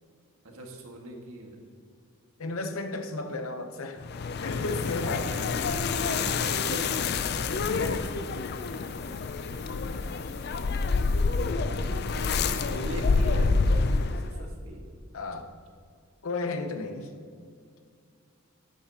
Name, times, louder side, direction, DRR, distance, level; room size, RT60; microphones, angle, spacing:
voice 1, 0.4-1.6 5.2-7.1 7.4-7.5 11.7-14.9, right 1 dB, 85° right, 0 dB, 1.7 m, -41 dB
voice 2, 2.4-4.0 4.3-5.3 7.1-7.2 7.6-8.1 15.1-15.5 16.2-17.1, left 3 dB, 80° left, 7 dB, 0.8 m, -33 dB
sound 1, 4.0-14.4, left 4 dB, 50° left, 0.4 m, -28 dB
sound 2, 4.7-11.5, left 7 dB, 35° left, 0.9 m, -51 dB
11.0 x 9.5 x 2.9 m, 2.2 s
head